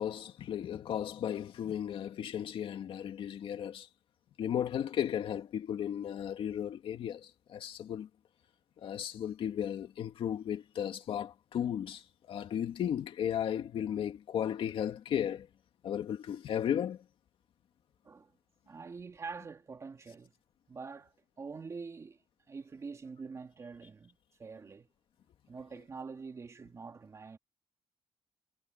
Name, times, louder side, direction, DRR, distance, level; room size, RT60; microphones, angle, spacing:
voice 1, 0.0-3.9 4.4-8.1 8.8-15.5 15.8-17.0, left 9 dB, 65° left, 2.3 m, -35 dB
voice 2, 18.7-20.3 20.7-24.9 25.5-27.4, right 4 dB, 30° right, 2.9 m, -45 dB
cardioid pair, 140°, 10 cm